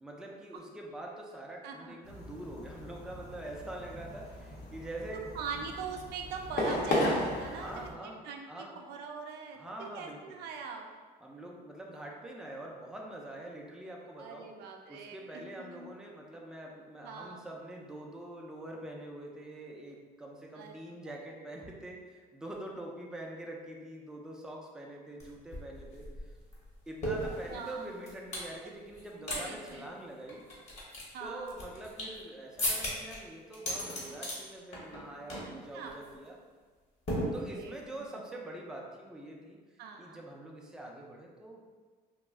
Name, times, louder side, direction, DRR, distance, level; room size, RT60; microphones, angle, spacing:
voice 1, 0.0-5.2 7.5-8.8 9.5-10.4 11.2-14.5 14.9-26.3 26.9-30.4 31.2-36.4 37.3-41.7, right 1 dB, 5° right, -1 dB, 0.3 m, -45 dB
voice 2, 1.6-1.9 5.3-10.9 14.2-15.4 15.7-15.9 17.0-17.4 20.5-20.7 27.5-27.9 29.2-29.9 31.1-31.5 35.7-36.0 37.4-38.1 39.8-40.2, right 5 dB, 75° right, 3 dB, 0.4 m, -42 dB
sound 1, 2.0-7.9, left 1 dB, 75° left, 0.7 m, -35 dB
sound 2, 25.2-25.3 25.5-28.5 28.9-29.4 29.7-29.8 30.3-32.2 32.6-33.2 33.5-34.4 34.7-35.0 35.3-35.6 35.9-36.1 37.1-37.8, equal, 40° left, 0.9 m, -36 dB
2.3 x 2.0 x 3.4 m, 1.5 s
cardioid pair, 110°, 17 cm